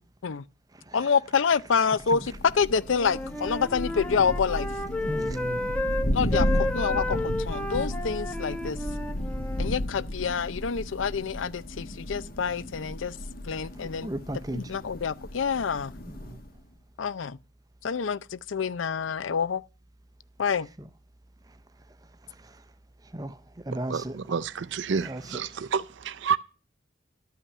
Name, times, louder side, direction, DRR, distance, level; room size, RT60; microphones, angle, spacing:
voice 1, 0.9-4.7 6.1-8.8 9.6-13.1 13.5-14.1 14.5-15.9 17.0-17.4 17.8-19.6 20.4-20.7, left 6 dB, 85° left, 0.5 m, -27 dB
Thunder, 2.0-16.6, left 1 dB, 50° left, 1.3 m, -33 dB
Wind instrument woodwind instrument, 2.9-9.7, left 1 dB, 5° left, 0.9 m, -32 dB
voice 2, 5.0-5.8 13.7-14.6 16.1-16.4 23.1-23.4 23.7-24.2 24.9-25.4, right 1 dB, 20° right, 0.6 m, -35 dB
voice 3, 23.9-26.4, right 6 dB, 70° right, 0.5 m, -29 dB
12.5 x 5.8 x 8.3 m
head